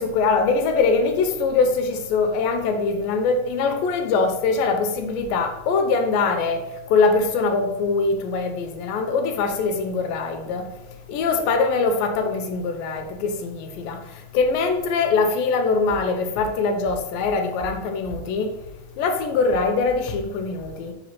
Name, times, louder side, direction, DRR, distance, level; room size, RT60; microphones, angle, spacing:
voice 1, 0.0-6.6 6.9-10.7 11.1-14.0 14.3-18.5 19.0-20.9, left 4 dB, 80° left, 2.4 m, -22 dB
5.1 x 4.1 x 5.7 m
omnidirectional pair, 4.1 m